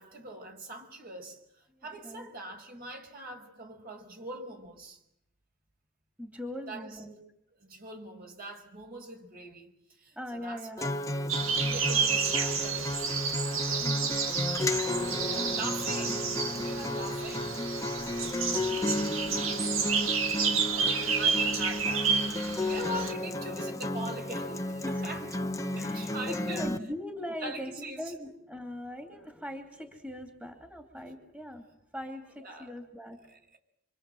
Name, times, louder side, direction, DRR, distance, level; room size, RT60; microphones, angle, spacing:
voice 1, 0.0-5.0 6.7-7.0 7.6-10.9 11.4-13.3 13.6-13.9 15.2-17.6 20.6-25.3 25.7-26.7 27.4-28.1 32.4-32.7 33.3-33.6, right 1 dB, 50° right, 5.2 m, -42 dB
voice 2, 1.7-2.3 6.2-7.2 10.1-10.8 13.8-14.3 24.8-25.3 25.8-33.2, left 1 dB, 10° right, 2.8 m, -41 dB
Acoustic guitar, 10.8-26.8, left 1 dB, 15° left, 1.1 m, -33 dB
sound 1, 11.3-23.1, right 6 dB, 85° right, 2.1 m, -30 dB
26.5 x 26.5 x 7.8 m
head